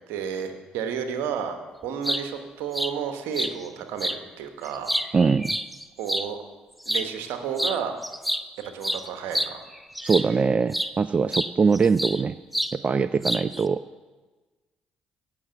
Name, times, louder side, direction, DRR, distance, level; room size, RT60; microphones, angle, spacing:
voice 1, 0.1-1.6 1.8-4.9 6.0-6.4 6.9-8.0 8.6-9.7, right 7 dB, 70° right, 7 dB, 1.2 m, -31 dB
sound 1, 1.8-2.2 2.7-2.9 3.3-3.5 4.0-4.2 4.6-6.3 6.8-7.1 7.6-10.4 10.7-10.9 11.3-12.2 12.5-12.7 13.2-13.6, equal, ahead, 0.7 m, -28 dB
voice 2, 5.1-5.5 10.0-12.4 12.8-13.8, right 5 dB, 35° right, 15 dB, 0.3 m, -22 dB
16.5 x 6.2 x 6.9 m, 1.3 s
hypercardioid pair, 45°, 4 cm